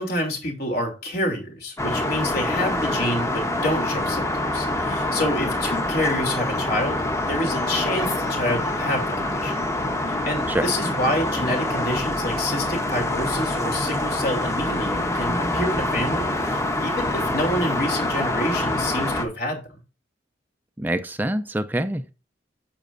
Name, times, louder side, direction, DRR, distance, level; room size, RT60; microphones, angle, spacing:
voice 1, 0.0-9.6 10.2-19.8, left 1 dB, 60° left, 2 dB, 2.9 m, -28 dB
sound 1, 1.8-19.3, left 1 dB, 15° left, 1.0 m, -25 dB
voice 2, 20.8-22.1, right 1 dB, 10° right, 10 dB, 0.4 m, -25 dB
10.0 x 7.6 x 2.6 m, 0.33 s
head